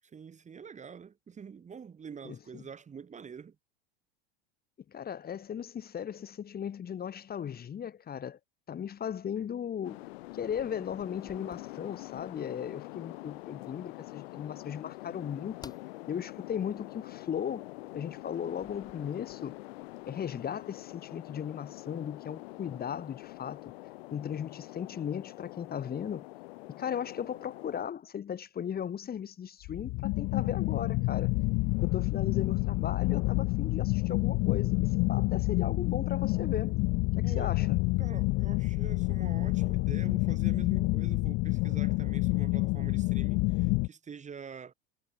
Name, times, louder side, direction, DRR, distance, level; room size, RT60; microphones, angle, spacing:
voice 1, 0.0-3.6 37.2-37.7 38.0-44.7, right 6 dB, 20° right, 2.3 m, -46 dB
voice 2, 2.2-2.6 4.9-8.4 8.7-10.1 10.3-15.7 16.1-17.7 17.9-19.6 20.1-23.6 24.1-26.3 26.7-31.3 31.8-36.7 37.2-37.8, left 8 dB, 30° left, 3.7 m, -37 dB
sound 1, 9.8-27.8, left 22 dB, 70° left, 3.2 m, -45 dB
sound 2, 10.5-12.5 15.6-15.9 18.6-21.5 22.0-22.5, left 3 dB, 10° left, 6.7 m, -57 dB
sound 3, 29.7-43.9, left 25 dB, 50° left, 1.1 m, -28 dB
hypercardioid pair, 105°, 32 cm